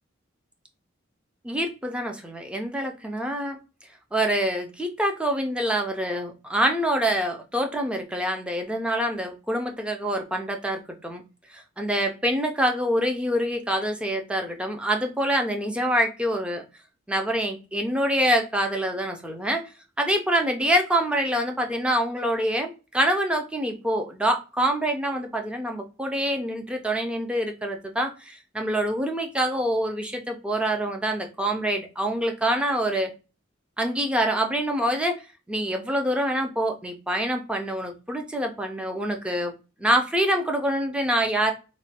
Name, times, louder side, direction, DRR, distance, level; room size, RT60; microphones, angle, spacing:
voice 1, 1.4-3.6 4.1-11.2 11.5-16.6 17.1-19.6 20.0-33.1 33.8-35.2 35.5-39.5 39.8-41.5, right 1 dB, 5° right, 3 dB, 0.4 m, -26 dB
3.0 x 2.2 x 2.8 m, 0.31 s
head